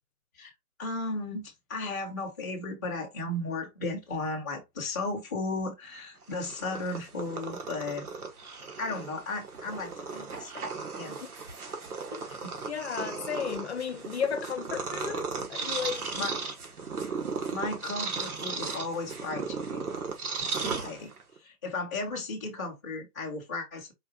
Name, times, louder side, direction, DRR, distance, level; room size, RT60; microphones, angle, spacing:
voice 1, 0.8-8.1 8.8-11.2 12.3-12.6 16.1-16.4 17.5-19.8 20.4-21.1 21.4-23.9, left 2 dB, 10° left, 0.6 m, -35 dB
Purr, 6.2-21.4, right 4 dB, 70° right, 1.4 m, -36 dB
voice 2, 12.7-16.1, left 7 dB, 45° left, 0.8 m, -34 dB
4.5 x 3.1 x 2.9 m
figure-of-eight pair, 150°, 46 cm